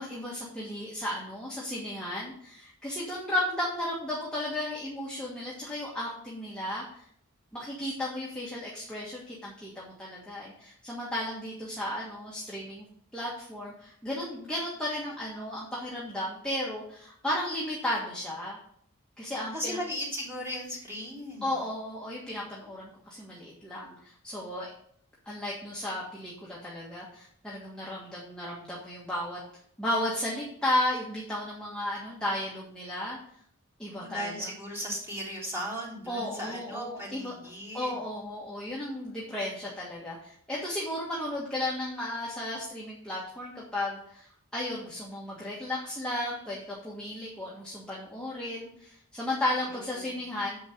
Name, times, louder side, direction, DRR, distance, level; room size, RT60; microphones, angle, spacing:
voice 1, 0.0-7.0 7.5-12.9 13.1-18.6 19.2-19.8 21.4-24.7 25.2-29.4 29.8-33.2 33.8-34.5 36.1-37.3 37.7-44.3 44.5-50.6, left 1 dB, 5° left, -7 dB, 1.6 m, -34 dB
voice 2, 19.5-21.5 34.0-38.0 49.7-50.2, equal, 10° right, -6 dB, 3.4 m, -37 dB
8.1 x 4.6 x 6.9 m, 0.64 s
head